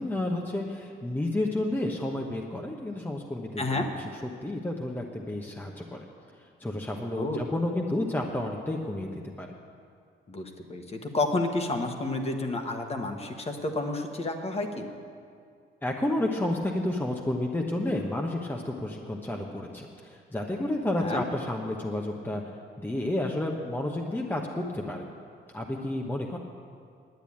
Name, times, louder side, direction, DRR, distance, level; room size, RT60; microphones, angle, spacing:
voice 1, 0.0-4.0 4.2-6.0 6.4-9.5 15.8-22.4 22.8-25.0 25.5-26.4, left 1 dB, 10° left, 1 dB, 1.0 m, -31 dB
voice 2, 10.3-14.9 20.9-21.2, left 2 dB, 30° left, 4 dB, 1.4 m, -30 dB
10.5 x 8.9 x 8.6 m, 2.3 s
cardioid pair, 90°, 20 cm